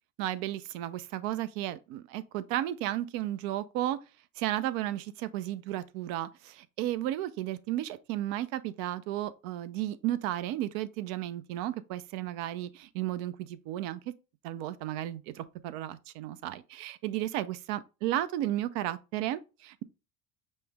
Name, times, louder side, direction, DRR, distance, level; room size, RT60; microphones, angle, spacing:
voice 1, 0.2-4.0 4.4-14.1 14.4-19.8, right 13 dB, 60° right, 0.5 m, -34 dB
5.4 x 2.0 x 3.3 m
hypercardioid pair, 80°, 41 cm